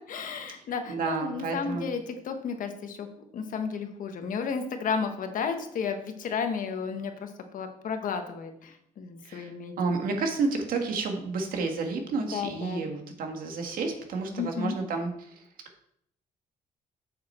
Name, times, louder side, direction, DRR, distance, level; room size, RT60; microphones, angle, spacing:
voice 1, 0.1-3.1 3.3-10.0 12.3-12.9 14.4-14.8, left 6 dB, 65° left, 6 dB, 1.3 m, -33 dB
voice 2, 0.9-1.9 9.2-9.5 9.8-15.1, right 4 dB, 75° right, 4 dB, 1.7 m, -30 dB
7.9 x 6.7 x 4.4 m, 0.72 s
cardioid pair, 105°, 15 cm